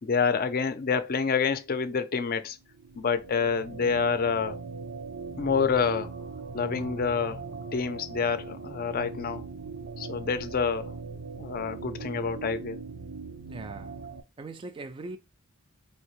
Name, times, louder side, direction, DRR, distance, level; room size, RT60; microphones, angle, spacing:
voice 1, 0.0-2.6 3.0-4.6 5.4-6.1 6.5-7.4 7.7-9.5 10.0-10.9 11.4-12.8, left 5 dB, 45° left, 0.5 m, -27 dB
sound 1, 2.6-14.2, right 4 dB, 75° right, 0.5 m, -40 dB
voice 2, 13.5-14.0 14.4-15.2, right 3 dB, 25° right, 0.3 m, -40 dB
4.3 x 2.9 x 3.1 m
head